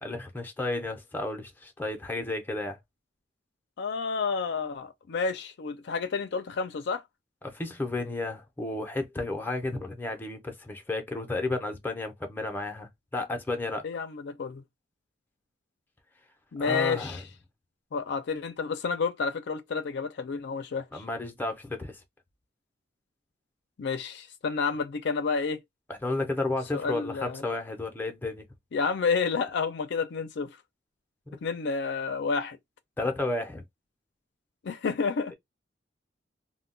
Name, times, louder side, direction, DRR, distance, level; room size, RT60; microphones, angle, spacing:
voice 1, 0.0-2.8 7.4-13.9 16.6-17.2 20.9-22.0 25.9-28.5 31.3-31.4 33.0-33.6, left 2 dB, 10° left, 0.5 m, -32 dB
voice 2, 3.8-7.0 13.8-14.6 16.5-17.2 17.9-21.0 23.8-25.6 26.7-27.4 28.7-30.6 31.4-32.6 34.6-35.3, left 5 dB, 65° left, 0.4 m, -30 dB
2.2 x 2.1 x 3.7 m
head